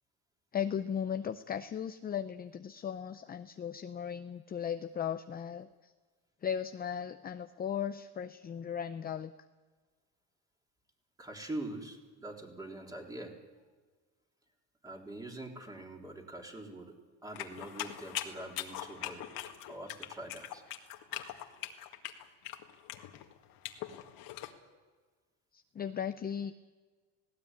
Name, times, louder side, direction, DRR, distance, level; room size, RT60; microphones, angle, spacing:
voice 1, 0.5-5.9 6.4-9.3 25.5-26.5, left 8 dB, 25° left, 10 dB, 0.6 m, -37 dB
voice 2, 11.2-13.4 14.8-19.3 19.7-20.6, right 1 dB, 10° right, 1 dB, 3.5 m, -44 dB
sound 1, 17.4-24.5, left 12 dB, 70° left, 1.9 m, -42 dB
19.0 x 17.0 x 9.6 m, 1.4 s
cardioid pair, 125°, 37 cm